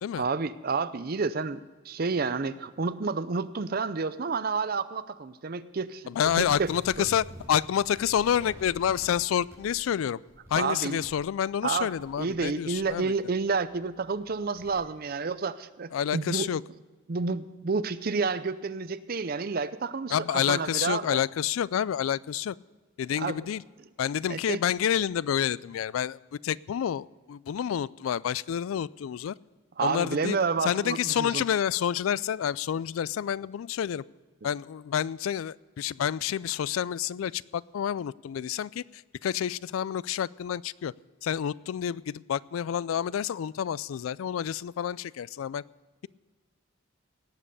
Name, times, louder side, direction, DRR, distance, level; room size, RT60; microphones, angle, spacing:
voice 1, 0.2-6.0 6.4-6.7 7.0-7.1 10.6-11.0 11.6-11.9 12.2-16.5 17.1-21.2 23.2-23.4 24.3-24.6 29.8-31.4, right 4 dB, 45° right, 14 dB, 0.6 m, -30 dB
voice 2, 6.1-10.2 10.5-13.1 15.9-16.6 20.1-22.6 23.0-23.6 24.0-29.3 29.8-34.0 34.4-40.9 41.2-45.6, left 9 dB, 90° left, 22 dB, 0.3 m, -29 dB
sound 1, 6.2-12.5 12.8-14.8, equal, 15° right, 4.5 m, -50 dB
18.0 x 7.7 x 6.6 m, 1.3 s
head